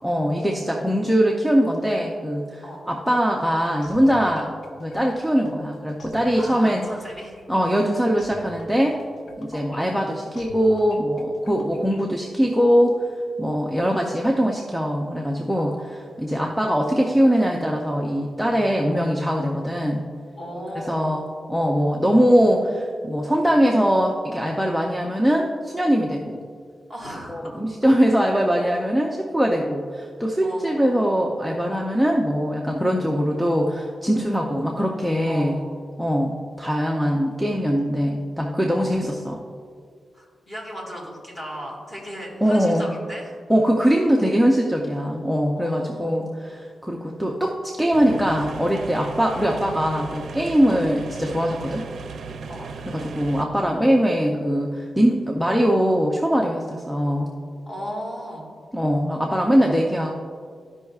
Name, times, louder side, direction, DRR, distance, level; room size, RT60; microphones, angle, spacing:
voice 1, 0.0-4.5 4.8-6.8 7.5-9.0 9.4-13.1 13.4-15.7 16.2-20.0 20.7-26.4 27.3-35.6 36.0-39.4 42.4-42.9 43.5-51.8 52.9-57.3 58.7-60.1, equal, ahead, -1 dB, 0.4 m, -21 dB
sound 1, 3.8-12.5, left 1 dB, 70° left, 0.7 m, -46 dB
voice 2, 6.3-7.4 9.5-9.7 15.6-15.7 20.4-21.0 26.9-27.6 30.4-31.0 34.5-34.6 35.3-35.7 38.7-38.9 40.1-43.3 45.5-46.2 50.6-50.8 52.5-52.7 57.7-58.5, equal, 20° left, -3 dB, 1.7 m, -36 dB
sound 2, 47.9-53.4, right 4 dB, 80° right, 0.4 m, -36 dB
13.5 x 5.4 x 2.3 m, 2.1 s
wide cardioid pair, 170°, 0 cm